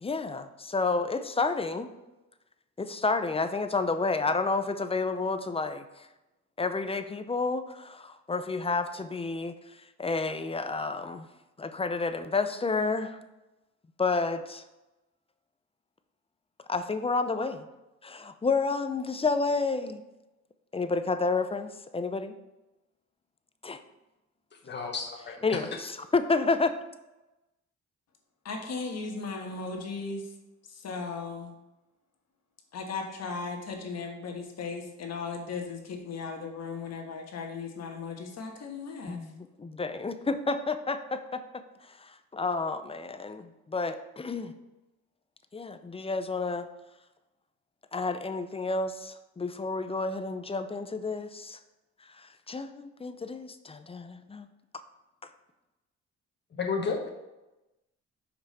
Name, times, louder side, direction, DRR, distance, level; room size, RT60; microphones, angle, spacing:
voice 1, 0.0-1.9 2.8-5.8 6.6-9.5 10.0-11.3 11.6-13.2 14.0-14.6 16.7-17.7 18.0-20.0 20.7-22.3 23.6-23.8 25.4-26.7 39.1-41.4 42.0-44.5 45.5-46.7 47.9-51.6 52.2-54.5, left 3 dB, 20° left, 9 dB, 0.5 m, -30 dB
voice 2, 24.6-25.6 56.5-57.1, left 5 dB, 35° left, 1 dB, 1.3 m, -32 dB
voice 3, 28.4-30.3 30.7-31.6 32.7-39.2, left 4 dB, 60° left, 2 dB, 1.4 m, -37 dB
5.9 x 5.1 x 4.2 m, 1.0 s
cardioid pair, 90°, 30 cm